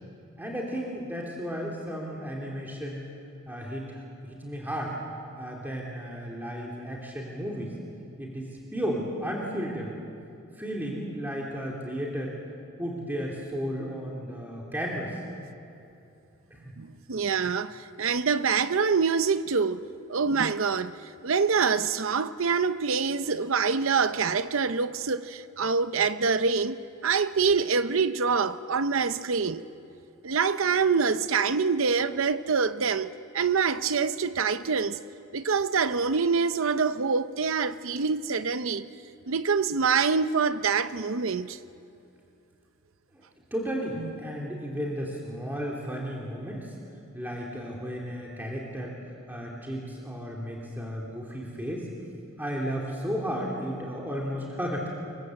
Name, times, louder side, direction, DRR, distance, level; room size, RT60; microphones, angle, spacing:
voice 1, 0.4-3.1 3.5-4.9 5.4-7.7 8.2-9.9 10.6-12.4 12.8-15.2 16.5-16.7 43.1-43.2 43.5-46.7 47.1-48.9 49.3-51.9 52.4-54.9, equal, 10° right, 3.0 m, -34 dB
voice 2, 16.8-21.0 21.2-29.6 30.2-35.0 35.3-38.9 39.3-41.6, right 5 dB, 70° right, 0.7 m, -25 dB
26.5 x 23.0 x 7.9 m
head